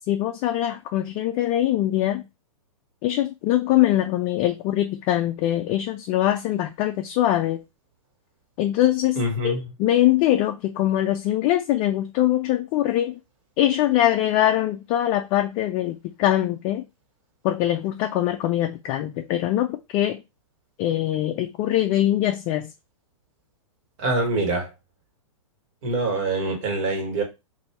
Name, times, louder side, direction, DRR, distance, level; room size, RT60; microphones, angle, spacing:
voice 1, 0.1-2.2 3.0-7.6 8.6-9.5 9.8-13.2 13.6-16.8 17.4-20.2 20.8-22.7, left 13 dB, 30° left, 0.4 m, -22 dB
voice 2, 9.2-9.7 24.0-24.7 25.8-27.2, right 2 dB, 50° right, 1.8 m, -25 dB
2.7 x 2.7 x 4.3 m
hypercardioid pair, 125°, 18 cm